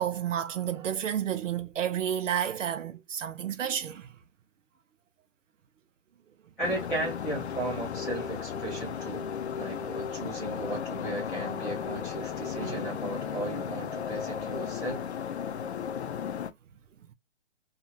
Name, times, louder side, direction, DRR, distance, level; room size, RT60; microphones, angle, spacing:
voice 1, 0.0-4.1 12.6-12.8, right 9 dB, 85° right, 0.6 m, -31 dB
sound 1, 6.6-16.5, left 7 dB, 65° left, 0.5 m, -35 dB
voice 2, 6.6-9.3 9.5-15.1, right 1 dB, 5° left, 0.5 m, -36 dB
2.5 x 2.4 x 2.8 m
hypercardioid pair, 160°, 36 cm